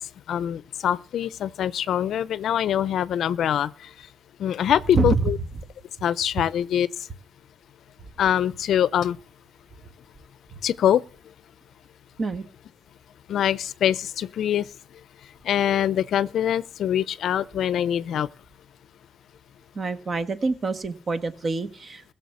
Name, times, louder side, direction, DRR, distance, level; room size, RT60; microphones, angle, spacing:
voice 1, 0.3-3.7 4.4-5.4 6.0-6.9 8.2-9.2 10.6-11.0 13.3-14.7 15.4-18.3, left 10 dB, 70° left, 0.6 m, -24 dB
voice 2, 4.9-5.3 12.2-12.4 19.7-22.0, right 3 dB, 40° right, 1.5 m, -26 dB
16.0 x 6.9 x 7.1 m
cardioid pair, 90°, 0 cm